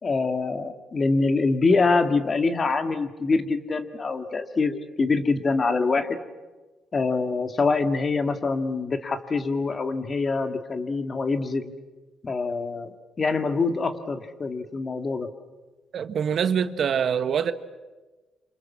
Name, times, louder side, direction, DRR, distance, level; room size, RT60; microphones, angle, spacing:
voice 1, 0.0-6.2 6.9-11.7 12.2-15.3, left 3 dB, 35° left, 8 dB, 2.1 m, -25 dB
voice 2, 15.9-17.5, right 7 dB, 60° right, 11 dB, 1.3 m, -24 dB
27.5 x 26.5 x 7.5 m, 1.2 s
cardioid pair, 90°, 0 cm